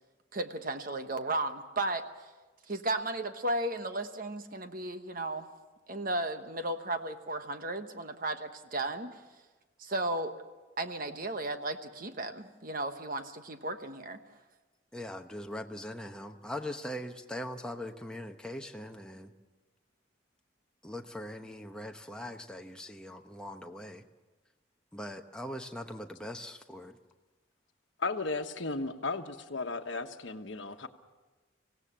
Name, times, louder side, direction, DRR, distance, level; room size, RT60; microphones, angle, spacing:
voice 1, 0.3-2.0 2.7-5.5 5.9-9.2 9.8-10.4 10.8-14.2, right 2 dB, 45° right, 1.1 m, -34 dB
voice 2, 14.9-19.3 20.8-24.0 24.9-27.0, left 1 dB, 5° left, 0.9 m, -41 dB
voice 3, 28.0-30.9, left 3 dB, 70° left, 1.2 m, -35 dB
25.0 x 17.0 x 7.5 m
head